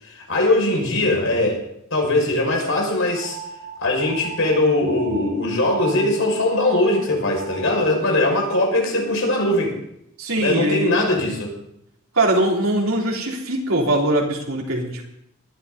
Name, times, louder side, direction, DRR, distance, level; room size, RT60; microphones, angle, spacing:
voice 1, 0.0-1.6 1.9-3.4 3.8-9.7 10.4-11.5, left 2 dB, 65° left, 0 dB, 6.1 m, -20 dB
sound 1, 3.1-8.0, right 6 dB, 45° right, 6.1 m, -37 dB
voice 2, 10.2-11.1 12.1-15.0, right 1 dB, 80° right, -1 dB, 3.7 m, -21 dB
20.0 x 12.5 x 4.1 m, 0.77 s
head